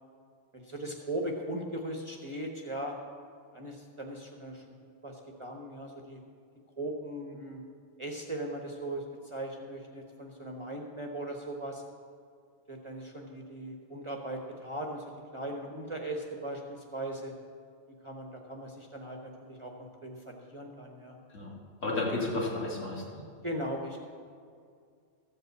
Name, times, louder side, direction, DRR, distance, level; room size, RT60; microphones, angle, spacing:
voice 1, 0.5-3.0 3.5-6.2 6.8-7.6 8.0-11.8 12.7-17.3 18.0-21.2 23.4-24.0, right 1 dB, 25° right, 1 dB, 0.9 m, -39 dB
voice 2, 21.3-23.0, left 2 dB, 65° left, -3 dB, 2.5 m, -32 dB
14.0 x 5.3 x 7.9 m, 2.2 s
omnidirectional pair, 1.4 m